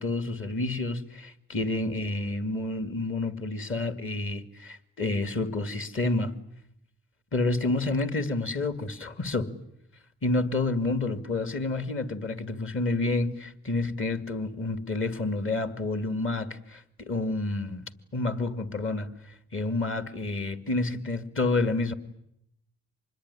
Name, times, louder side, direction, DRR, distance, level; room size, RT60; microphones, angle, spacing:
voice 1, 0.0-6.3 7.3-9.5 10.2-19.1 19.5-21.9, left 2 dB, 45° left, 2.4 m, -29 dB
26.0 x 21.0 x 9.9 m
cardioid pair, 90°, 30 cm